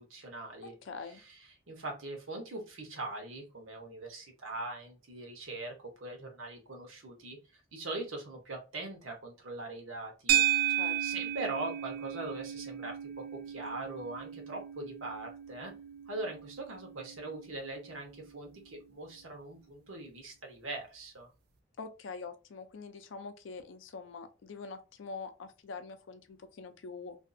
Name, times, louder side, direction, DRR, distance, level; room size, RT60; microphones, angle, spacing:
voice 1, 0.0-0.7 1.3-1.4 1.7-10.4 11.0-15.7 16.1-21.3, right 2 dB, 80° right, 0.9 m, -41 dB
voice 2, 0.6-1.2 10.7-11.2 21.8-27.2, left 4 dB, 70° left, 0.4 m, -44 dB
sound 1, 10.3-18.7, right 11 dB, 50° right, 0.3 m, -35 dB
2.6 x 2.4 x 2.5 m
head